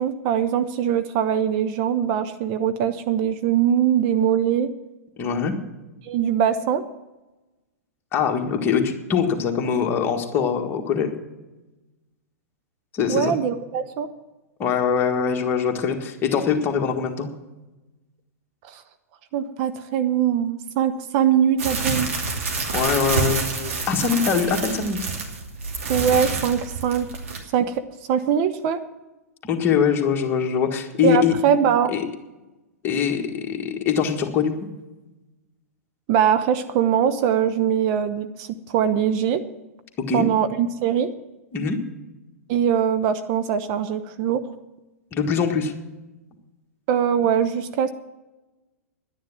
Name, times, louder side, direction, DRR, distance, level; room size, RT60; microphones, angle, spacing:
voice 1, 0.0-4.7 6.0-6.8 13.1-14.1 18.7-18.8 19.3-22.1 25.9-27.1 27.5-27.8 28.1-28.8 31.0-31.9 36.1-39.4 40.1-41.1 42.5-44.4 46.9-47.9, right 8 dB, 35° right, 9 dB, 0.7 m, -22 dB
voice 2, 5.2-5.6 8.1-11.1 12.9-13.3 14.6-17.3 22.7-25.0 29.4-31.3 31.9-32.0 32.8-34.5 40.0-40.3 41.5-41.8 45.1-45.7, left 7 dB, 25° left, 3 dB, 1.6 m, -23 dB
sound 1, 21.6-27.4, right 3 dB, 55° right, 2.7 m, -27 dB
11.0 x 10.0 x 7.3 m, 1.1 s
figure-of-eight pair, 105°, 8 cm